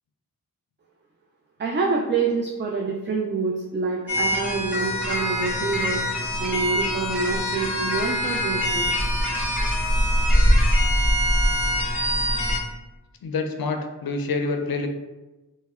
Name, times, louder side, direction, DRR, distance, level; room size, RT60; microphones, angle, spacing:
voice 1, 1.6-6.0 6.4-8.9, right 4 dB, 30° right, -1 dB, 0.4 m, -26 dB
sound 1, 4.1-12.6, equal, 5° right, 1.1 m, -23 dB
voice 2, 13.2-14.9, left 3 dB, 75° left, 5 dB, 0.5 m, -27 dB
3.2 x 2.1 x 3.4 m, 1.1 s
wide cardioid pair, 45°, 36 cm